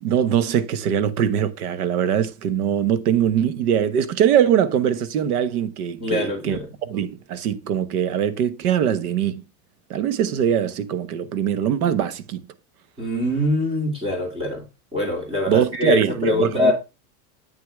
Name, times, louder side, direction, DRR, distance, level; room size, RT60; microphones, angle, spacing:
voice 1, 0.0-9.4 9.9-12.4 15.5-16.7, right 9 dB, 80° right, 1.2 m, -22 dB
voice 2, 6.0-6.7 13.0-14.6 14.9-16.7, left 2 dB, 10° right, 2.7 m, -23 dB
8.8 x 6.4 x 3.5 m
supercardioid pair, 175°, 44 cm